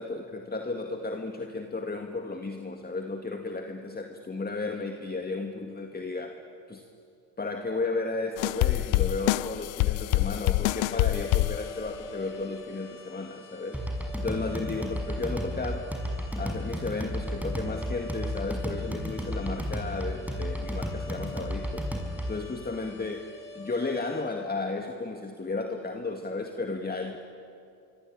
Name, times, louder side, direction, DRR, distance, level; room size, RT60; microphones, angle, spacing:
voice 1, 0.0-6.4 6.7-6.8 7.4-13.8 14.2-15.9 16.4-21.9 22.3-27.2, left 3 dB, 20° left, 4 dB, 2.2 m, -34 dB
sound 1, 8.4-12.1, left 19 dB, 80° left, 0.7 m, -26 dB
sound 2, 10.7-24.2, left 2 dB, 60° left, 7.9 m, -45 dB
sound 3, 13.7-22.5, equal, 5° right, 5.8 m, -33 dB
25.5 x 24.5 x 8.9 m, 2.5 s
supercardioid pair, 65°, 44 cm